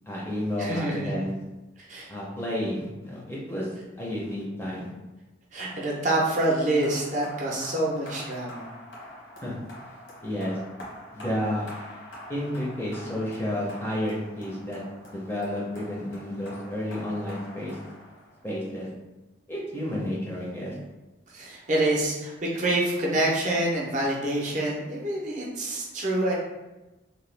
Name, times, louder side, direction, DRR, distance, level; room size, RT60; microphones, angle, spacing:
voice 1, 0.0-1.3 2.1-3.7 4.0-4.9 9.4-9.5 10.2-10.6 11.1-11.7 12.3-14.8 15.1-17.8 18.4-18.9 19.5-20.7, left 1 dB, 10° left, -5 dB, 0.5 m, -31 dB
voice 2, 0.6-1.2 1.8-2.1 5.5-8.7 21.3-26.3, right 1 dB, 40° right, -4 dB, 0.6 m, -27 dB
sound 1, 5.6-18.6, left 1 dB, 75° left, 1.1 m, -45 dB
2.8 x 2.2 x 3.2 m, 1.1 s
head